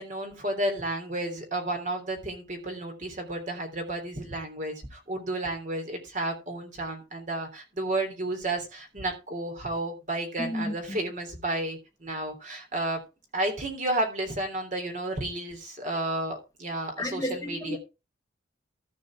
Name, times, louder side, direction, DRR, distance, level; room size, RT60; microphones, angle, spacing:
voice 1, 0.0-13.0 13.3-17.8, right 1 dB, 45° right, 3.4 m, -32 dB
voice 2, 10.4-11.0 17.0-17.8, left 1 dB, 20° left, 1.4 m, -32 dB
14.5 x 5.3 x 4.8 m
head